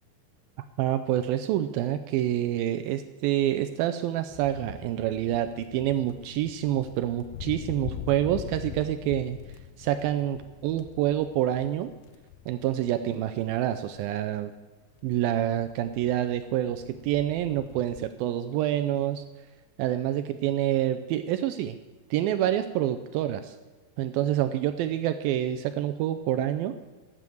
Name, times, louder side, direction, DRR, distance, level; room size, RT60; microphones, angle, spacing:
voice 1, 0.8-9.4 9.8-11.9 12.5-14.5 15.0-19.2 19.8-21.8 22.1-23.6 24.0-26.7, right 12 dB, 85° right, 10 dB, 2.1 m, -27 dB
sound 1, 4.3-14.1 15.0-18.1, left 10 dB, 80° left, 2.3 m, -43 dB
13.0 x 9.1 x 7.7 m, 1.3 s
omnidirectional pair, 4.8 m